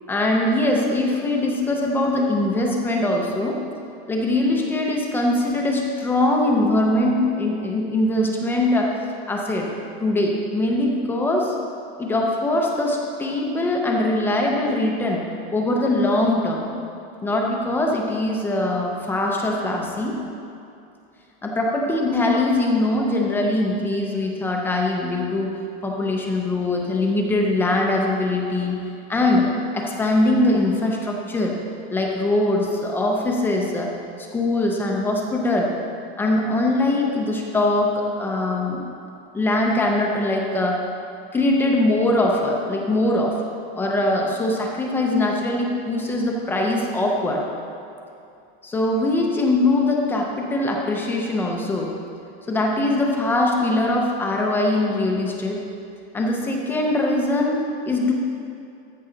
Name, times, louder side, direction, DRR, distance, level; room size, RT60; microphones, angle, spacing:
voice 1, 0.1-3.6 4.1-8.9 9.3-9.7 10.0-11.6 12.0-15.2 15.5-16.7 17.2-20.2 21.4-25.6 25.8-28.8 29.1-29.5 29.7-31.6 31.9-33.9 34.2-35.7 36.2-38.8 39.3-40.8 41.3-43.4 43.8-47.4 48.6-51.9 52.5-55.6 56.1-57.6 57.8-58.1, left 2 dB, 5° left, -1 dB, 0.3 m, -22 dB
13.5 x 6.2 x 3.8 m, 2.6 s
supercardioid pair, 175°, 31 cm